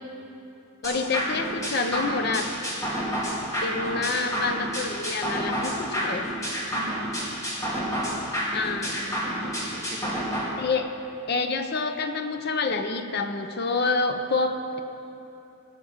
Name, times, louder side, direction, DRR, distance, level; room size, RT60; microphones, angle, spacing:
voice 1, 0.8-2.5 3.6-6.3 8.5-9.0 9.4-9.6 10.6-10.9 11.3-14.8, left 3 dB, 50° left, 7 dB, 0.7 m, -27 dB
sound 1, 0.8-10.4, equal, 15° left, 1.9 m, -29 dB
voice 2, 3.7-4.1 6.7-7.2 7.6-8.2 8.7-10.2, right 3 dB, 45° right, 1 dB, 1.1 m, -40 dB
16.5 x 5.9 x 7.3 m, 2.8 s
head